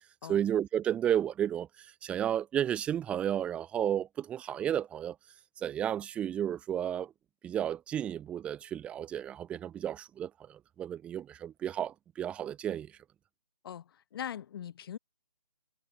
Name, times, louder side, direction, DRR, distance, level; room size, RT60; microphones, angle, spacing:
voice 1, 0.3-1.7 2.0-5.2 5.6-7.1 7.4-12.9, right 10 dB, 5° right, 0.7 m, -32 dB
voice 2, 13.6-15.0, left 9 dB, 35° left, 5.6 m, -41 dB
figure-of-eight pair, 150°, 20 cm